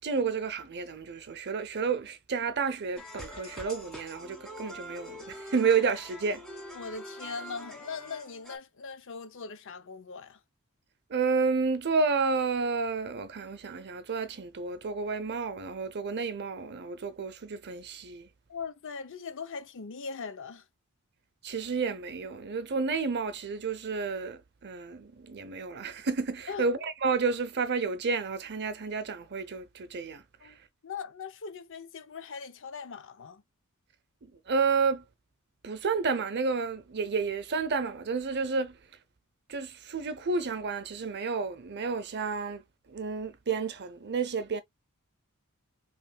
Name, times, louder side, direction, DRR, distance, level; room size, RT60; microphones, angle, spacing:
voice 1, 0.0-6.4 11.1-18.3 21.4-30.5 34.2-35.0 35.6-38.8 39.5-42.6 42.9-44.6, right 4 dB, 50° right, 0.7 m, -31 dB
sound 1, 3.0-8.6, equal, ahead, 1.7 m, -44 dB
voice 2, 6.7-10.4 18.5-20.7 26.5-26.8 30.4-30.6 30.8-33.4, left 5 dB, 60° left, 0.6 m, -40 dB
5.4 x 3.1 x 2.2 m
head